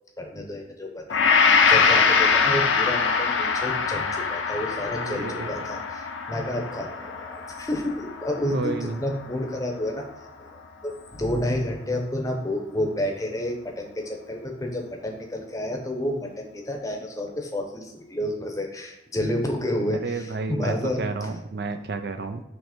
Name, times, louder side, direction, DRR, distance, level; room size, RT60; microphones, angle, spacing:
voice 1, 0.2-10.0 10.4-21.3, left 1 dB, 15° left, 2 dB, 0.8 m, -30 dB
Gong, 1.1-9.4 9.9-10.0, left 5 dB, 90° left, 0.7 m, -23 dB
voice 2, 5.1-5.6 8.5-9.0 19.9-22.4, right 3 dB, 55° right, 8 dB, 0.4 m, -31 dB
6.1 x 3.2 x 5.0 m, 0.94 s
head